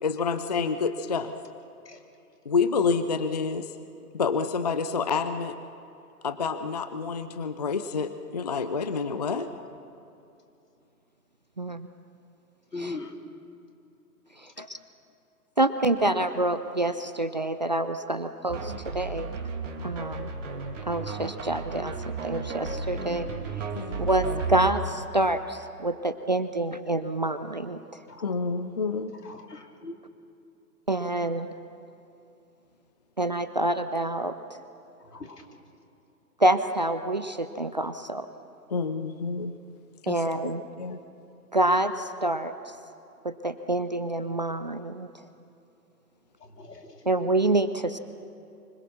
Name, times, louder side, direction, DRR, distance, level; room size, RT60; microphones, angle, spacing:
voice 1, 0.0-1.3 2.5-3.7 4.1-5.5 6.2-9.5 23.7-24.1 28.2-29.1 38.7-39.5 40.0-40.2 40.8-41.0, left 5 dB, 30° left, 11 dB, 0.4 m, -28 dB
voice 2, 11.6-11.9 12.8-13.0 14.4-14.8 15.6-19.3 19.8-20.3 20.8-23.7 24.0-28.0 30.9-31.5 33.2-34.6 36.4-38.3 40.1-40.6 41.5-42.8 43.2-45.1 47.1-48.0, right 1 dB, 30° right, 10 dB, 0.4 m, -27 dB
voice 3, 12.7-13.1 14.6-14.7 28.1-28.3 29.2-29.9 35.1-35.4 46.6-46.9, left 3 dB, 80° left, 3 dB, 2.9 m, -39 dB
sound 1, 18.5-24.7, right 4 dB, 50° right, 2.4 m, -34 dB
25.0 x 21.0 x 6.1 m, 2.7 s
figure-of-eight pair, 130°, 47 cm